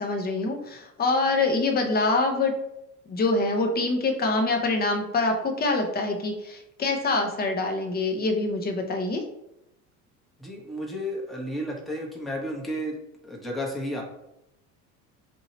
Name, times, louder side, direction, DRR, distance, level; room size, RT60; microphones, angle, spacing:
voice 1, 0.0-2.5 3.1-9.2, left 3 dB, 20° left, 3 dB, 0.7 m, -25 dB
voice 2, 10.4-13.0 13.2-14.0, equal, ahead, -3 dB, 1.0 m, -32 dB
2.9 x 2.7 x 4.1 m, 0.85 s
hypercardioid pair, 70°, 43 cm